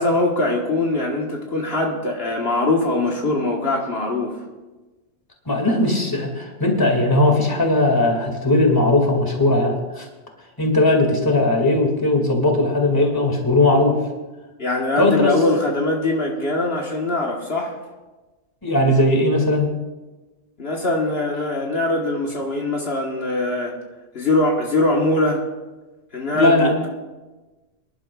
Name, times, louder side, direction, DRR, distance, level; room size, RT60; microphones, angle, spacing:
voice 1, 0.0-4.4 14.6-17.8 20.6-23.8 24.1-25.4 26.1-26.9, left 2 dB, 65° left, -1 dB, 1.6 m, -22 dB
voice 2, 5.5-10.1 10.6-14.0 15.0-15.3 18.6-19.7 26.3-26.7, left 2 dB, 20° left, 1 dB, 2.2 m, -18 dB
24.5 x 11.5 x 2.4 m, 1.2 s
omnidirectional pair, 1.1 m